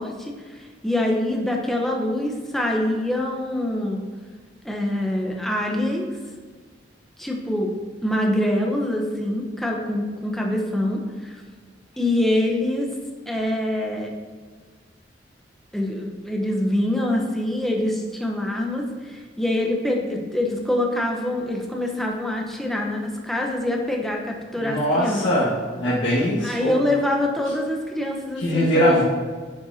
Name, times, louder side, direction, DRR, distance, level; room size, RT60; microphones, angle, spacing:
voice 1, 0.0-4.1 4.6-6.1 7.2-7.8 8.0-11.4 12.0-12.9 13.3-14.1 15.7-25.2 26.4-29.0, left 1 dB, ahead, 0 dB, 0.8 m, -25 dB
voice 2, 24.6-26.5 28.4-29.0, equal, 85° left, -9 dB, 1.6 m, -21 dB
9.8 x 5.4 x 2.7 m, 1.5 s
head